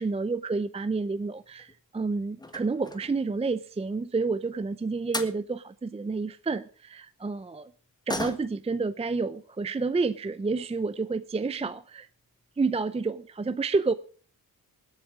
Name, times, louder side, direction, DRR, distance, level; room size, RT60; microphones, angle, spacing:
voice 1, 0.0-7.7 8.1-12.1 12.6-13.9, right 4 dB, 20° right, 13 dB, 0.5 m, -29 dB
sound 1, 1.3-1.8 2.4-3.2 4.7-4.8 5.1-5.4 8.1-8.7 9.1-9.2 9.6-9.8 10.5-10.6 11.0-11.1 11.5-11.8 12.1-12.2 12.5-12.6, left 2 dB, 10° left, 1.4 m, -37 dB
19.5 x 8.1 x 4.9 m, 0.43 s
cardioid pair, 90°, 35 cm